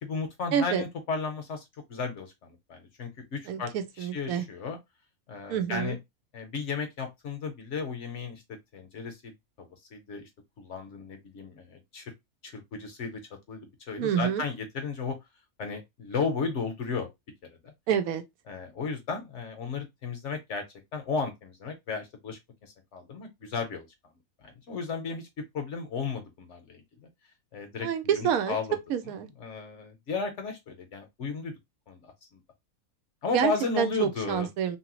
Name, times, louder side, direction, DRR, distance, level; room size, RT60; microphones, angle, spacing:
voice 1, 0.0-4.8 5.3-6.0 6.3-8.4 8.7-9.3 9.6-10.3 10.6-12.1 12.4-13.2 13.5-15.2 15.6-17.1 17.6-17.7 18.5-20.6 20.9-23.9 24.4-25.3 25.5-27.1 27.5-28.8 29.4-31.5 31.9-32.4 33.2-34.5, left 5 dB, 60° left, 0.9 m, -34 dB
voice 2, 0.5-0.8 3.5-4.4 5.5-6.0 14.0-14.4 17.9-18.2 27.8-28.5 28.9-29.3 33.3-33.5 33.8-34.8, right 8 dB, 75° right, 1.0 m, -27 dB
2.8 x 2.7 x 2.9 m
omnidirectional pair, 1.5 m